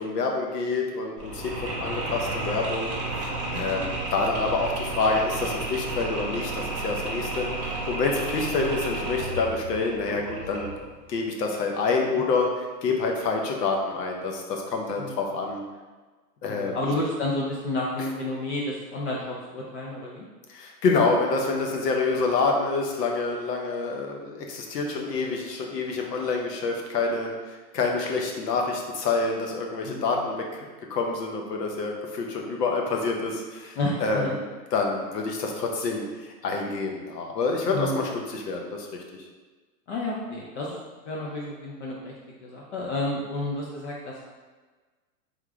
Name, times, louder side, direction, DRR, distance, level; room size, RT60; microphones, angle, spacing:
voice 1, 0.0-10.7 11.1-15.6 16.4-16.9 20.5-39.0, left 3 dB, 75° left, 1 dB, 0.9 m, -27 dB
Mechanisms, 1.2-10.9, right 2 dB, 20° right, 0.4 m, -32 dB
voice 2, 16.5-20.2 29.8-30.2 33.8-34.4 37.7-38.1 39.9-42.1 42.4-44.2, left 2 dB, 45° left, -3 dB, 0.6 m, -31 dB
3.7 x 3.0 x 3.5 m, 1.3 s
hypercardioid pair, 150°, 50 cm